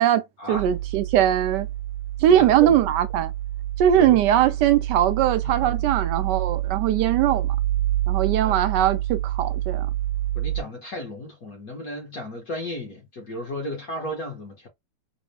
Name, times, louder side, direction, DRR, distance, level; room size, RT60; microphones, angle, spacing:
sound 1, 0.5-10.6, right 14 dB, 85° left, 2.0 m, -28 dB
voice 1, 0.5-1.7 2.2-3.3 3.8-7.6 8.1-9.9, right 11 dB, 70° right, 1.2 m, -20 dB
voice 2, 2.3-2.8 3.9-4.2 5.4-5.8 8.4-8.5 10.3-14.7, left 1 dB, 55° left, 1.5 m, -34 dB
4.2 x 2.2 x 3.2 m
omnidirectional pair, 2.1 m